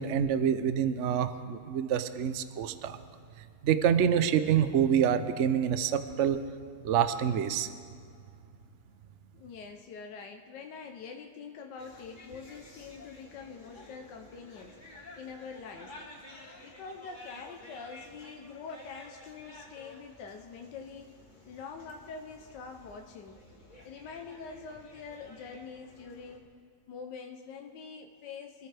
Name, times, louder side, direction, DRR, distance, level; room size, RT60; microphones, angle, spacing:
voice 1, 0.0-3.0 3.6-6.4 6.8-7.7, right 8 dB, 60° right, 10 dB, 0.8 m, -27 dB
voice 2, 9.3-14.8 15.2-15.9 16.6-21.1 21.4-23.4 23.8-26.5 26.9-28.7, left 5 dB, 80° left, 3 dB, 1.5 m, -45 dB
sound 1, 11.8-26.4, left 2 dB, 25° left, 2.2 m, -52 dB
25.5 x 13.5 x 3.4 m, 2.5 s
omnidirectional pair, 1.9 m